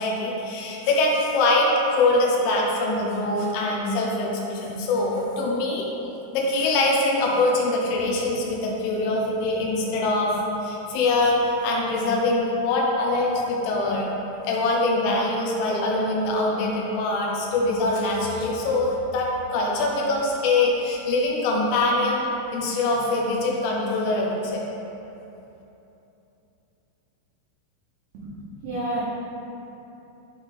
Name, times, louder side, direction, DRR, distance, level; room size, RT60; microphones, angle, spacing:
voice 1, 0.0-5.9 6.3-10.4 10.6-14.1 14.4-22.3 22.5-24.6, left 2 dB, 85° left, -2 dB, 3.3 m, -23 dB
voice 2, 28.1-29.0, right 1 dB, 85° right, -8 dB, 2.2 m, -30 dB
10.5 x 3.6 x 3.2 m, 3.0 s
omnidirectional pair, 5.9 m